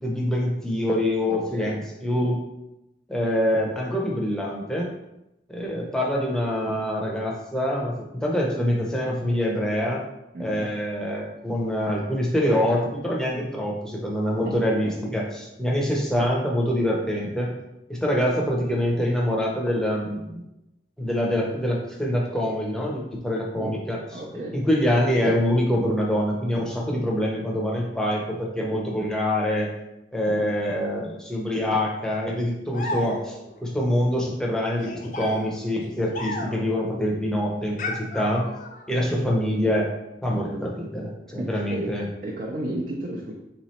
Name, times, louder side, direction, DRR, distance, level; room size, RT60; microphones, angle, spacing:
voice 1, 0.0-2.4 3.1-4.9 5.5-10.0 10.4-17.5 17.9-20.4 21.0-24.0 24.3-29.7 30.1-33.4 33.6-38.5 38.9-39.9 40.2-42.0, equal, 5° left, -3 dB, 0.7 m, -25 dB
voice 2, 1.3-1.8 10.3-10.7 14.4-14.9 23.5-23.8 24.1-24.7 38.9-39.1 41.4-43.3, right 1 dB, 50° right, -2 dB, 0.5 m, -34 dB
sound 1, 32.7-33.6 34.8-36.8 37.8-38.9, left 1 dB, 45° left, 0.6 m, -34 dB
3.8 x 3.1 x 4.2 m, 0.90 s
head